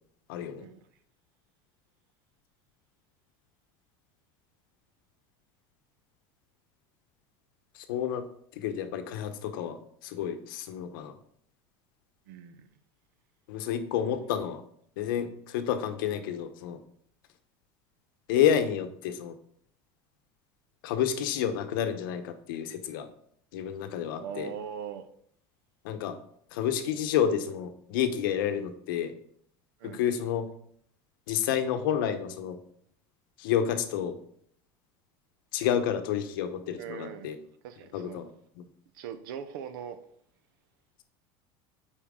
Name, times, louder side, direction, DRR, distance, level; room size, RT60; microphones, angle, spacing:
voice 1, 0.3-0.7 7.7-8.2 8.6-11.1 13.5-14.6 15.0-16.8 18.3-19.3 20.8-23.1 23.5-24.5 25.8-26.1 26.5-29.1 29.8-30.5 31.3-32.6 33.4-34.2 35.5-37.4 37.9-38.3 38.6-38.7, left 9 dB, 90° left, 0.9 m, -29 dB
voice 2, 12.3-12.7 24.2-25.1 29.8-30.0 36.8-37.3 37.6-38.2 38.9-40.0, right 8 dB, 85° right, 0.7 m, -40 dB
8.7 x 4.5 x 3.7 m
cardioid pair, 165°, 11 cm